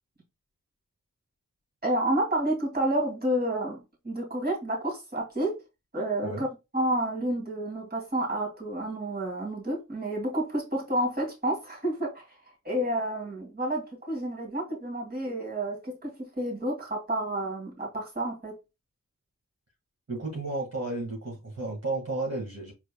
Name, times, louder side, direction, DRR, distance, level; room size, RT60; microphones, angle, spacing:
voice 1, 1.8-5.6 5.9-6.5 6.7-12.3 12.6-18.6, right 1 dB, 30° right, 2.5 m, -30 dB
voice 2, 20.1-22.7, right 2 dB, 55° right, 1.9 m, -33 dB
5.3 x 4.2 x 2.2 m
wide cardioid pair, 60°, 32 cm